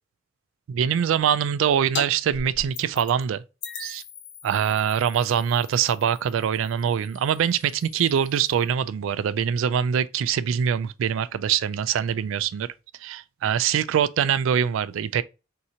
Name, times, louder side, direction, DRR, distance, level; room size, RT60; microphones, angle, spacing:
voice 1, 0.7-3.4 3.8-4.0 4.4-12.7 13.0-15.2, right 8 dB, 70° right, 0.3 m, -23 dB
sound 1, 2.0-2.1 2.3-3.2 3.6-8.7, left 5 dB, 60° left, 0.8 m, -40 dB
3.7 x 2.8 x 4.3 m
head